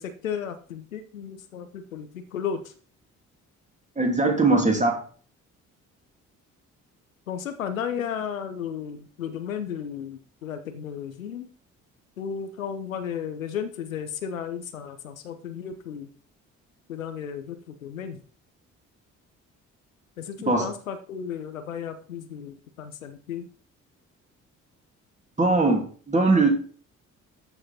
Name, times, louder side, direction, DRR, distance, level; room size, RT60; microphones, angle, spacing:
voice 1, 0.0-2.6 7.3-11.5 12.2-16.1 16.9-18.2 20.2-23.5, left 8 dB, 80° left, 9 dB, 0.8 m, -34 dB
voice 2, 4.0-5.0 20.5-20.7 25.4-26.5, right 3 dB, 20° right, 2 dB, 2.8 m, -21 dB
13.0 x 5.0 x 4.3 m, 0.43 s
figure-of-eight pair, 45°, 40 cm